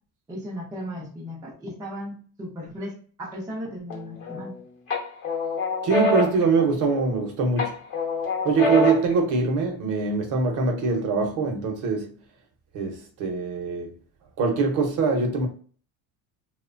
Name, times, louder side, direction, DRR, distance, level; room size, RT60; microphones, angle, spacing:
voice 1, 0.3-4.6, equal, 10° right, 0.4 m, -36 dB
sound 1, 3.9-4.5 4.9-7.2 7.6-9.2, left 2 dB, 35° left, 0.8 m, -26 dB
voice 2, 5.8-7.7 8.4-12.1 12.7-13.9 14.4-15.5, right 4 dB, 55° right, 0.7 m, -23 dB
2.8 x 2.1 x 2.4 m
cardioid pair, 165°, 39 cm